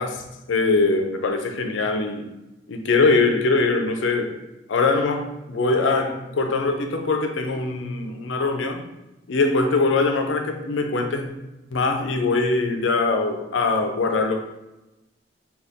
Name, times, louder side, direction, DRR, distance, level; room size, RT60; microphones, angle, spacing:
voice 1, 0.0-2.3 2.7-4.3 4.7-8.8 9.3-11.3 11.7-14.4, left 3 dB, 85° left, 5 dB, 0.5 m, -22 dB
3.9 x 2.3 x 3.5 m, 0.98 s
head